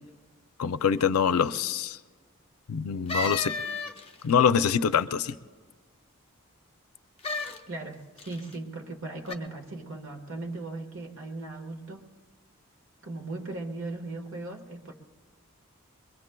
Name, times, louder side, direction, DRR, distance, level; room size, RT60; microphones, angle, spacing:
voice 1, 0.6-2.0 2.7-3.5 4.2-5.3, left 7 dB, 85° left, 12 dB, 0.4 m, -24 dB
sound 1, 3.1-4.3 7.2-7.6 8.2-8.6 9.3-9.4, left 2 dB, 25° left, 0.5 m, -32 dB
voice 2, 7.7-12.0 13.0-14.9, right 2 dB, 70° right, 4 dB, 1.3 m, -38 dB
23.0 x 22.5 x 2.2 m, 1.5 s
head